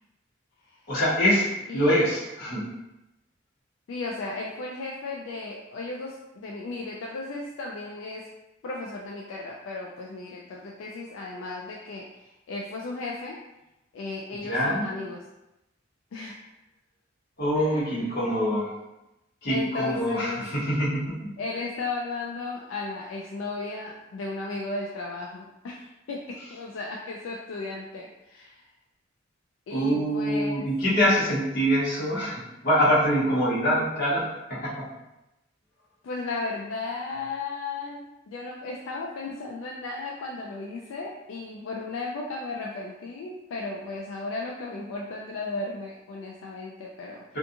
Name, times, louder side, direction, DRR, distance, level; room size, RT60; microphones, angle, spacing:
voice 1, 0.9-1.4 1.7-2.6 14.4-14.9 17.4-18.7 19.4-21.2 29.7-34.9, equal, 55° left, -8 dB, 1.0 m, -24 dB
voice 2, 3.9-8.3 8.6-13.4 13.9-15.3 16.1-16.4 17.5-18.2 19.5-20.4 21.4-28.7 29.7-30.6 36.0-47.2, left 3 dB, 80° left, -2 dB, 0.3 m, -35 dB
2.4 x 2.4 x 2.7 m, 0.94 s
head